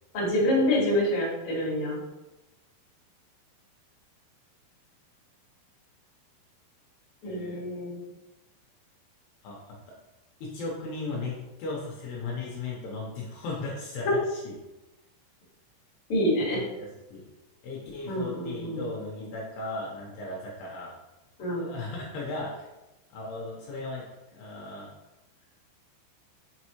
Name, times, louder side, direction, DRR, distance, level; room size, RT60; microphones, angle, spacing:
voice 1, 0.1-2.0 7.2-8.0 16.1-16.6 18.1-18.8 21.4-21.7, left 1 dB, 45° left, -6 dB, 2.0 m, -27 dB
voice 2, 7.2-7.6 9.4-10.0 10.4-14.5 16.5-17.3 17.6-20.9 21.5-22.7 23.1-24.9, left 3 dB, 75° left, -3 dB, 2.8 m, -37 dB
6.2 x 5.4 x 3.0 m, 1.0 s
omnidirectional pair, 5.3 m